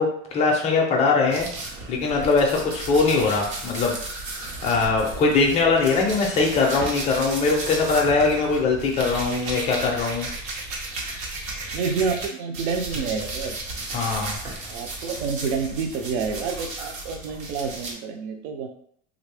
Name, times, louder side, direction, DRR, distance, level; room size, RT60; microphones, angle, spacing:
voice 1, 0.0-1.5 1.9-3.9 4.6-10.3 13.9-14.4, left 4 dB, 20° left, 0 dB, 0.3 m, -21 dB
sound 1, 1.3-12.3 12.5-17.9, right 2 dB, 80° right, 1.2 m, -34 dB
voice 2, 11.7-13.6 14.7-18.7, right 5 dB, 55° right, 5 dB, 0.5 m, -28 dB
3.2 x 2.5 x 3.3 m, 0.65 s
supercardioid pair, 150°, 39 cm